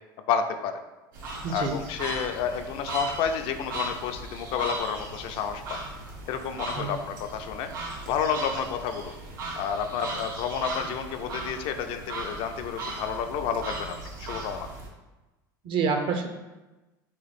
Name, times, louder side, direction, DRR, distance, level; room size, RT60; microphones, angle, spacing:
voice 1, 0.3-0.8 1.5-5.8 6.3-9.1 9.6-14.7, left 7 dB, 55° left, 7 dB, 0.4 m, -30 dB
sound 1, 1.1-14.9, right 2 dB, 85° right, 0.7 m, -37 dB
voice 2, 15.7-16.3, right 5 dB, 50° right, 5 dB, 0.5 m, -27 dB
3.0 x 2.4 x 4.2 m, 1.1 s
supercardioid pair, 100°, 11 cm